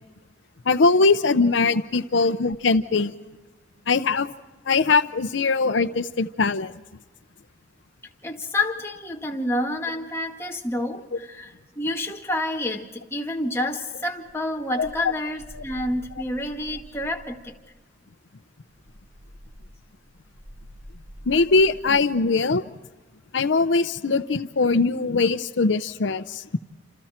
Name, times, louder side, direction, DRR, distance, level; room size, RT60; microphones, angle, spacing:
voice 1, 0.7-3.1 3.9-4.3 4.7-6.7 14.8-14.9 15.5-15.6 21.3-22.6 23.3-26.4, left 3 dB, 75° left, 11 dB, 0.6 m, -21 dB
voice 2, 8.2-17.6, left 1 dB, 15° left, 0 dB, 2.0 m, -29 dB
sound 1, 14.3-17.5 18.7-22.2, equal, 80° right, 4.1 m, -46 dB
28.0 x 27.5 x 4.4 m, 1.2 s
head